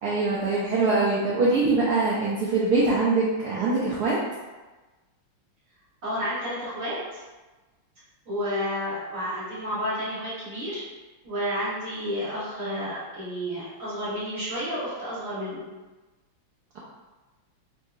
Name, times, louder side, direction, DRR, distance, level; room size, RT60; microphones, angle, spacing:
voice 1, 0.0-4.2, right 3 dB, 85° right, -6 dB, 0.8 m, -23 dB
voice 2, 6.0-7.2 8.2-10.9 11.2-15.6, equal, 45° right, -10 dB, 1.4 m, -31 dB
3.6 x 2.8 x 2.4 m, 1.2 s
omnidirectional pair, 2.3 m